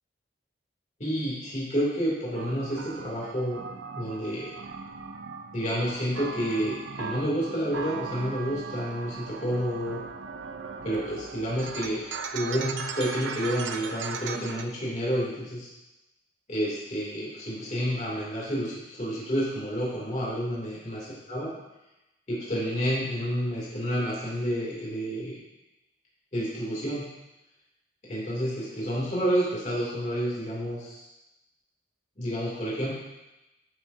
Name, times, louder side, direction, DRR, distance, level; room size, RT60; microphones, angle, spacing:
voice 1, 1.0-3.6 3.9-4.5 5.5-10.0 10.8-12.0 12.3-15.7 16.5-21.5 22.3-25.4 26.3-27.0 28.0-31.0 32.2-32.9, equal, 40° left, -6 dB, 2.9 m, -29 dB
sound 1, 2.3-14.7, right 5 dB, 80° right, 0.5 m, -38 dB
12.5 x 6.5 x 2.8 m, 0.98 s
head